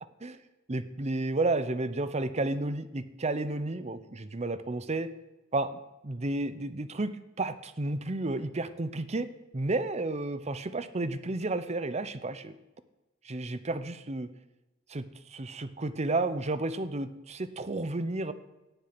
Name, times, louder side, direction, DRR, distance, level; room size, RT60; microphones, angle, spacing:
voice 1, 0.7-5.1 5.5-9.3 9.5-12.6 13.2-14.3 14.9-18.3, right 2 dB, 30° right, 13 dB, 0.7 m, -32 dB
18.0 x 6.8 x 6.0 m, 1.1 s
head